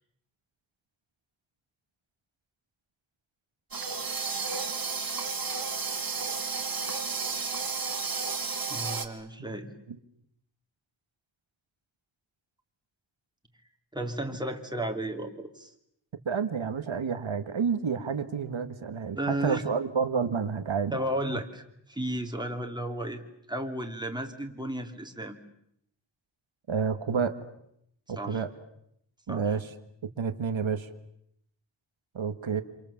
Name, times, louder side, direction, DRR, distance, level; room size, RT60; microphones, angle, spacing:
sound 1, 3.7-9.1, right 4 dB, 50° right, 2.5 m, -32 dB
voice 1, 8.7-9.7 13.9-15.7 19.2-19.6 20.9-21.6 21.9-23.2 23.5-25.4 28.2-28.4 29.3-29.5, right 1 dB, 10° right, 3 dB, 3.2 m, -33 dB
voice 2, 16.2-21.0 21.3-21.4 26.7-27.3 28.1-28.5 29.3-29.7 30.2-30.9 32.1-32.6, right 6 dB, 85° right, 9 dB, 1.8 m, -29 dB
27.5 x 27.5 x 7.3 m, 0.75 s
wide cardioid pair, 90°, 46 cm